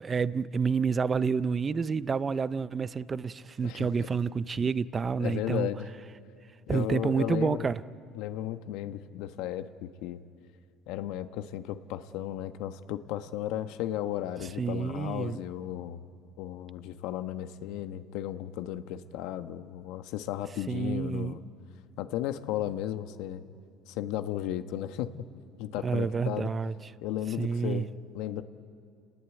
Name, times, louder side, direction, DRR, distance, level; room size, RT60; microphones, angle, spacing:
voice 1, 0.0-5.7 6.7-7.8 14.6-15.4 20.7-21.4 25.8-26.7 27.4-27.9, right 5 dB, 25° right, 0.6 m, -29 dB
voice 2, 3.6-4.1 5.2-5.9 6.7-7.7 8.1-10.2 10.9-16.1 16.4-21.4 22.0-23.4 23.9-25.1 25.6-26.5 27.0-28.4, left 12 dB, 75° left, 1.2 m, -35 dB
29.5 x 20.0 x 9.2 m
cardioid pair, 125°, 0 cm